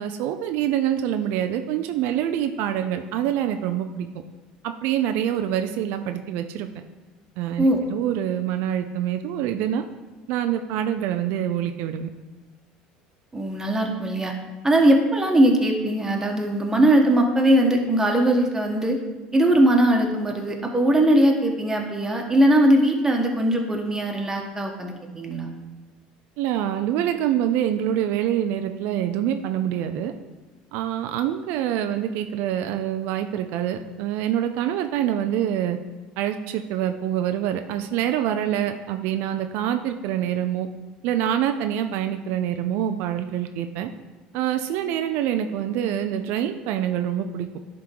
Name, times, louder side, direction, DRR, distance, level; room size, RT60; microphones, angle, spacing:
voice 1, 0.0-4.1 4.6-6.7 7.4-9.8 10.3-12.1 26.4-30.1 30.7-35.8 36.2-40.7 41.0-43.9 44.3-47.5, right 10 dB, 70° right, 7 dB, 0.4 m, -25 dB
voice 2, 13.3-14.3 14.6-19.0 19.3-25.5, right 1 dB, 15° right, 1 dB, 1.4 m, -20 dB
10.5 x 3.7 x 4.6 m, 1.3 s
supercardioid pair, 90°, 3 cm